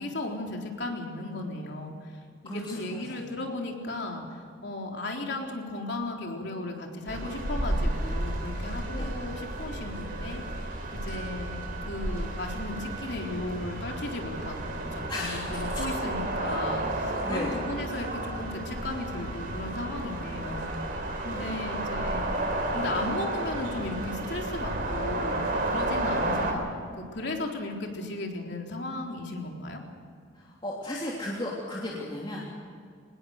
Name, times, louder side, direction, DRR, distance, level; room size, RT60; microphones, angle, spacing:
voice 1, 0.0-10.7 11.0-22.3 22.7-25.4 25.7-29.8, left 2 dB, 60° left, 1 dB, 3.9 m, -35 dB
voice 2, 2.4-3.2 9.0-9.1 11.1-11.2 15.1-15.9 17.2-17.5 21.3-21.6 30.3-32.4, left 1 dB, 25° left, -5 dB, 3.2 m, -35 dB
sound 1, 7.1-26.5, right 1 dB, 50° right, 4.1 m, -32 dB
25.5 x 20.0 x 6.7 m, 2.3 s
head